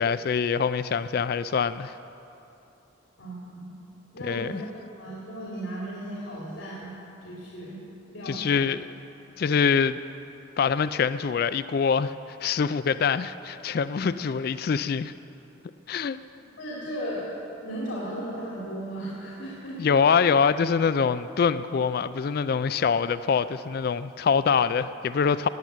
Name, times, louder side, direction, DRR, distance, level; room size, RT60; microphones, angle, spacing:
voice 1, 0.0-2.0 4.2-4.6 8.3-8.9 9.4-10.0 10.6-15.1 15.9-16.2 19.8-25.5, left 6 dB, 50° left, 13 dB, 0.3 m, -24 dB
voice 2, 3.2-3.8 4.1-4.7 5.0-6.9 7.2-7.8 8.1-8.7 14.0-14.1 16.6-17.2 17.6-19.8, right 1 dB, 70° left, -6 dB, 3.0 m, -36 dB
17.5 x 7.5 x 9.5 m, 2.9 s
head